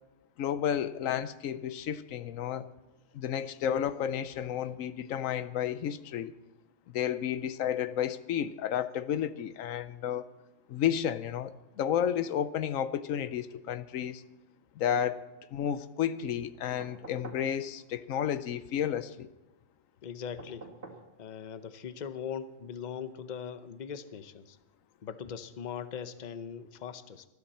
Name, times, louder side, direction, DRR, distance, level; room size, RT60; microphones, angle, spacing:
voice 1, 0.4-2.7 3.1-6.3 6.9-10.3 10.7-14.2 14.8-15.2 15.5-19.3, left 9 dB, 85° left, 14 dB, 1.1 m, -32 dB
sound 1, 16.8-17.5 20.4-21.1 22.7-22.8, right 3 dB, 55° right, 2.3 m, -47 dB
voice 2, 20.0-20.7 21.2-24.6 25.0-27.2, left 7 dB, 40° left, 11 dB, 0.8 m, -40 dB
20.0 x 13.0 x 4.3 m, 1.0 s
omnidirectional pair, 1.3 m